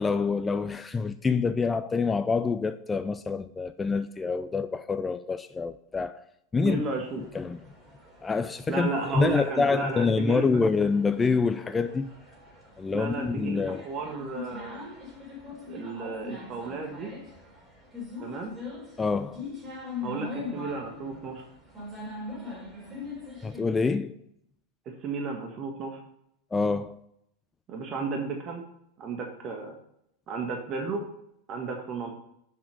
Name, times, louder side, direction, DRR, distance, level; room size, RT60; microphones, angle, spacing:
voice 1, 0.0-6.2 6.5-6.8 7.3-7.6 8.2-12.1 12.8-13.8 19.0-19.5 23.4-24.2 26.5-27.0, left 4 dB, 15° left, 0.4 m, -26 dB
sound 1, 6.6-23.6, left 3 dB, 20° right, 3.8 m, -42 dB
voice 2, 6.6-7.2 8.7-10.7 12.9-14.8 15.7-17.1 18.2-18.5 20.0-21.4 24.8-26.0 27.7-28.6 29.0-29.7 30.3-31.0 31.5-32.1, right 3 dB, 40° right, 1.6 m, -33 dB
7.3 x 5.8 x 5.1 m
hypercardioid pair, 95°, 0 cm